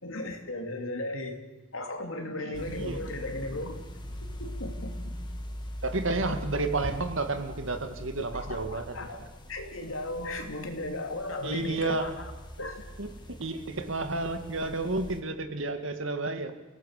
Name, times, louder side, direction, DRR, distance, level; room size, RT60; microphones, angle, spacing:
voice 1, 0.0-1.4 1.7-3.8 4.2-5.1 8.3-12.3 12.6-12.8, left 2 dB, 85° left, 4 dB, 3.1 m, -36 dB
voice 2, 2.4-3.0 5.8-9.1 11.4-12.1 13.0-16.5, right 2 dB, 70° right, 8 dB, 2.1 m, -31 dB
sound 1, 2.5-15.2, equal, 25° left, 2.4 m, -41 dB
29.5 x 17.5 x 6.7 m, 1.1 s
head